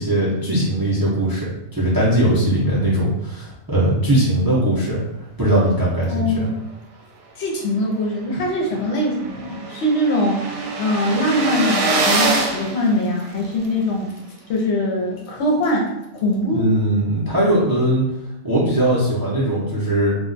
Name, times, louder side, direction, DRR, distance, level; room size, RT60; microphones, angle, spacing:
voice 1, 0.0-5.0 5.4-6.5 16.5-18.0 18.4-20.2, right 1 dB, 25° right, -7 dB, 0.5 m, -19 dB
voice 2, 6.1-6.6 7.4-14.1 14.5-15.9 16.1-16.7, left 1 dB, 70° left, 0 dB, 0.9 m, -22 dB
sound 1, 8.1-8.2 8.5-8.6 8.8-13.7, right 3 dB, 80° right, 0.9 m, -24 dB
2.3 x 2.2 x 3.8 m, 0.91 s
omnidirectional pair, 1.2 m